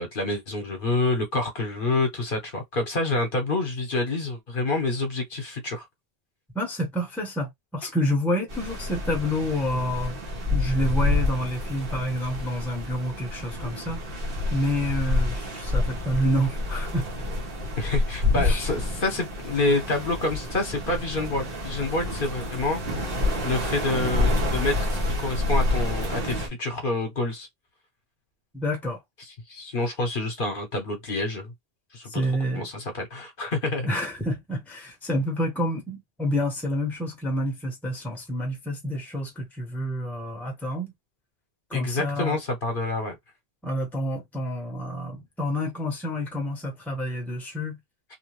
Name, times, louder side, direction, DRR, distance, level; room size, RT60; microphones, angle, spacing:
voice 1, 0.0-5.9 17.8-22.8 23.4-27.5 29.5-31.5 31.9-32.1 32.5-33.9 41.7-43.2, left 2 dB, 60° left, 1.1 m, -27 dB
voice 2, 6.5-10.2 10.5-17.1 18.3-18.7 28.5-29.0 32.0-32.7 33.8-40.9 41.7-42.4 43.6-47.8, equal, ahead, 0.8 m, -28 dB
sound 1, 8.5-26.5, left 2 dB, 60° right, 1.1 m, -28 dB
2.7 x 2.2 x 3.0 m
omnidirectional pair, 1.1 m